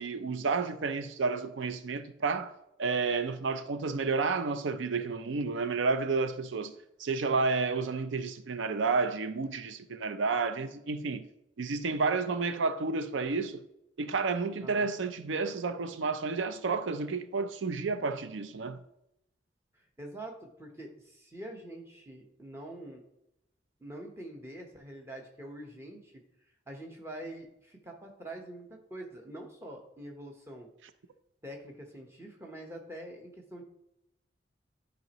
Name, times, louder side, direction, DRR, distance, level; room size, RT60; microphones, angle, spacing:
voice 1, 0.0-2.5 2.8-6.7 7.0-11.3 11.6-13.6 14.0-18.8, right 4 dB, 90° right, 0.5 m, -31 dB
voice 2, 14.6-14.9 19.7-23.0 23.8-26.2 26.7-30.7 31.4-33.6, right 1 dB, 15° right, 1.0 m, -45 dB
10.5 x 5.1 x 3.0 m
head